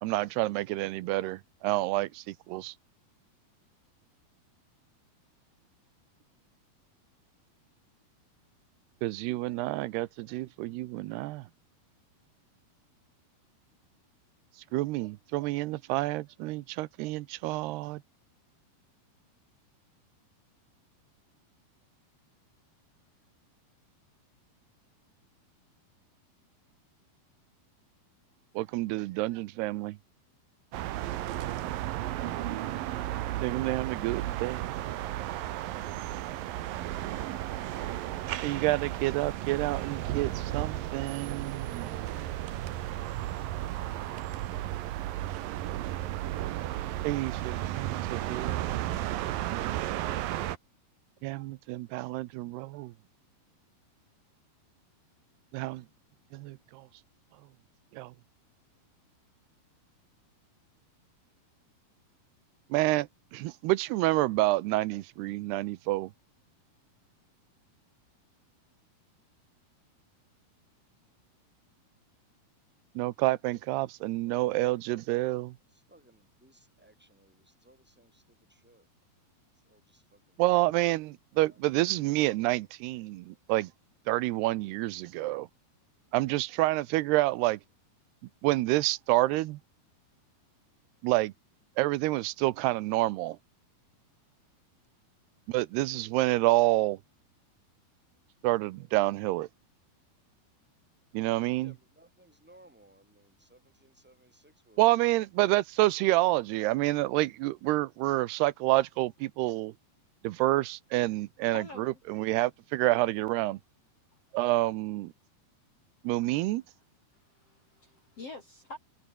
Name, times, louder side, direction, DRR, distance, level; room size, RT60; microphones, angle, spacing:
voice 1, 0.0-2.7 9.0-11.4 14.7-18.0 28.6-30.0 33.4-34.9 38.4-42.0 47.0-48.8 49.5-49.8 51.2-52.9 55.5-55.8 56.3-56.8 57.9-58.1 62.7-66.1 73.0-75.5 80.4-83.7 84.1-85.5 86.1-87.6 88.4-89.6 91.0-91.3 91.8-93.4 95.5-97.0 98.4-99.5 101.1-101.7 104.8-109.7 110.2-113.6 114.3-115.1 116.0-116.6, right 18 dB, 85° right, 2.9 m, -28 dB
sound 1, 30.7-50.6, right 14 dB, 70° right, 2.7 m, -34 dB
voice 2, 75.7-78.9 79.6-80.9 81.5-81.6 101.6-105.3, right 1 dB, ahead, 5.8 m, -62 dB
voice 3, 111.5-112.0 117.3-118.8, left 2 dB, 40° left, 4.2 m, -45 dB
open air
omnidirectional pair, 4.6 m